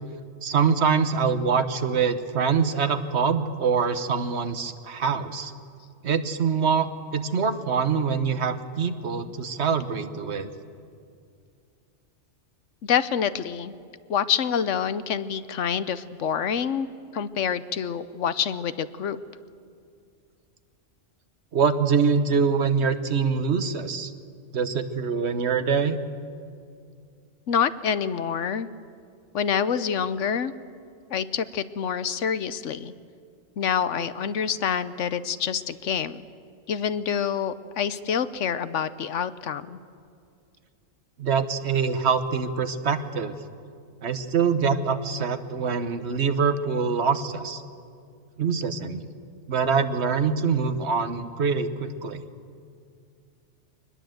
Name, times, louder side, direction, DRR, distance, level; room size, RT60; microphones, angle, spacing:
voice 1, 0.4-5.5 6.0-10.5 21.5-24.1 24.5-26.0 41.2-43.3 44.0-47.6 48.4-49.1 49.5-52.2, right 5 dB, 60° right, 9 dB, 1.4 m, -24 dB
voice 2, 12.8-13.7 14.1-16.9 17.1-19.2 27.5-28.7 29.3-30.5 31.1-32.9 33.6-36.3 36.7-39.8, left 7 dB, 75° left, 14 dB, 1.1 m, -27 dB
23.5 x 20.5 x 7.9 m, 2.3 s
omnidirectional pair, 1.3 m